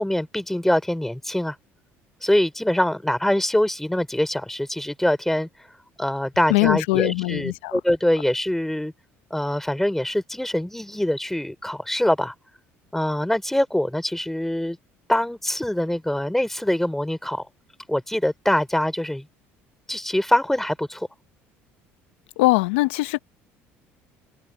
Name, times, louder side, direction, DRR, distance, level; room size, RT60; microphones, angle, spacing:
voice 1, 0.0-1.5 2.2-5.5 6.0-8.9 9.3-12.3 12.9-14.8 15.1-17.5 17.9-19.3 19.9-21.1, left 1 dB, 5° left, 5.1 m, -24 dB
voice 2, 6.5-7.8 22.4-23.2, left 21 dB, 85° left, 0.8 m, -21 dB
supercardioid pair, 75°, 6 cm